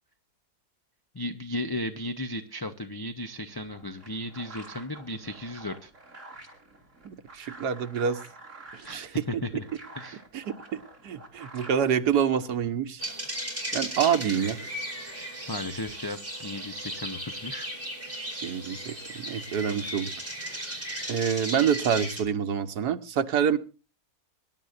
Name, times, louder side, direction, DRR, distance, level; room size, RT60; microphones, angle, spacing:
voice 1, 1.1-5.9 8.8-9.6 10.0-10.2 15.1-17.7, left 1 dB, 20° left, 8 dB, 0.7 m, -35 dB
sound 1, 3.5-12.7, right 2 dB, 50° right, 3.8 m, -48 dB
voice 2, 7.0-8.2 8.7-9.2 9.5-9.6 10.3-13.0 13.7-14.8 18.4-20.1 20.4-20.6 21.1-23.6, right 8 dB, 80° right, 9 dB, 1.6 m, -27 dB
sound 2, 13.0-22.2, right 1 dB, 10° right, 4.4 m, -36 dB
24.5 x 11.5 x 2.6 m, 0.33 s
omnidirectional pair, 1.7 m